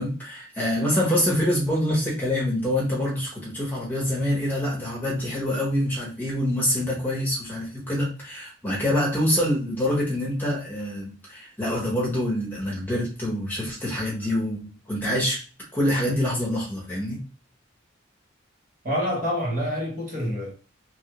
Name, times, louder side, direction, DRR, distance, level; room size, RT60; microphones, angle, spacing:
voice 1, 0.0-15.4 15.7-17.2, left 1 dB, 10° left, 1.0 m, -26 dB
voice 2, 18.8-20.5, equal, 45° right, 1.0 m, -27 dB
3.1 x 2.4 x 3.0 m
head